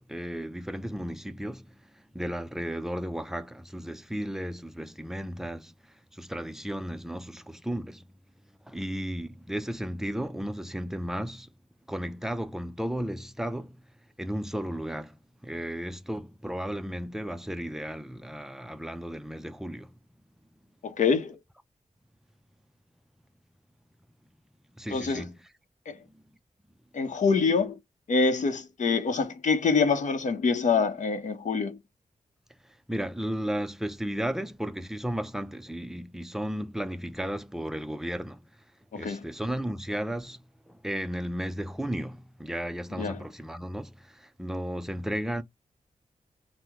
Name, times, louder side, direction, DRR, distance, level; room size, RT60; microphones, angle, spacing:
voice 1, 0.0-8.1 8.6-11.5 11.9-19.9 24.7-25.5 26.1-26.2 32.6-38.6 38.9-45.4, equal, 5° right, 0.3 m, -34 dB
voice 2, 20.8-21.4 24.9-25.2 25.9-26.0 26.9-27.8 28.1-31.8 38.9-39.2 43.0-43.2, left 5 dB, 65° left, 0.7 m, -25 dB
2.9 x 2.0 x 3.4 m
wide cardioid pair, 160°, 14 cm